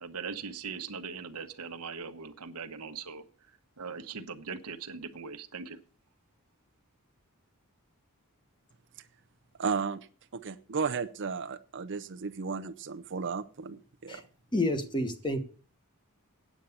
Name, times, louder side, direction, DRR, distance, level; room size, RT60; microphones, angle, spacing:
voice 1, 0.0-3.2 3.8-5.8, right 5 dB, 85° right, 9 dB, 1.1 m, -40 dB
voice 2, 9.6-10.0 10.3-14.2, right 5 dB, 55° right, 9 dB, 0.6 m, -34 dB
voice 3, 14.5-15.4, left 1 dB, 20° left, 8 dB, 1.3 m, -29 dB
9.0 x 8.2 x 7.1 m, 0.42 s
head